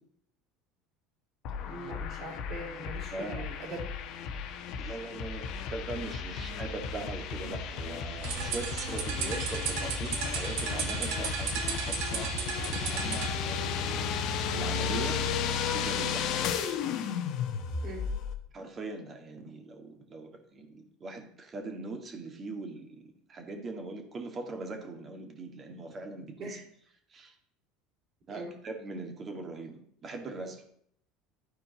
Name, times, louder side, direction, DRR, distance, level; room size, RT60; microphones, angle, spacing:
sound 1, 1.4-18.3, left 6 dB, 60° left, 1.0 m, -34 dB
voice 1, 1.6-3.9 4.2-4.4 17.8-18.1 26.4-26.6 28.3-28.5, right 2 dB, 55° right, -5 dB, 3.0 m, -42 dB
voice 2, 3.1-3.5 4.8-16.3 18.5-26.6 27.1-27.3 28.3-30.6, right 3 dB, 30° right, 4 dB, 1.9 m, -41 dB
sound 2, 8.2-13.3, right 7 dB, 70° right, 1.2 m, -35 dB
11.5 x 4.5 x 4.1 m, 0.66 s
supercardioid pair, 105°, 0 cm